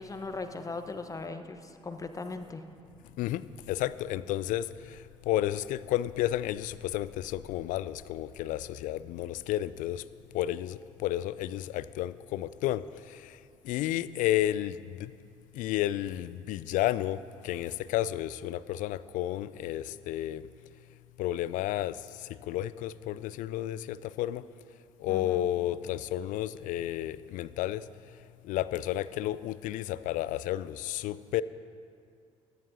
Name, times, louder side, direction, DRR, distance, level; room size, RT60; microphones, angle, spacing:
voice 1, 0.0-2.6 25.1-25.5, left 3 dB, 20° left, 7 dB, 1.0 m, -39 dB
voice 2, 3.2-4.7 5.3-10.0 10.3-12.8 13.6-15.1 15.6-17.2 17.4-20.4 21.2-21.9 22.5-24.4 25.0-27.8 28.4-31.4, left 13 dB, 50° left, 17 dB, 0.4 m, -31 dB
17.0 x 14.0 x 2.7 m, 2.4 s
figure-of-eight pair, 50°, 17 cm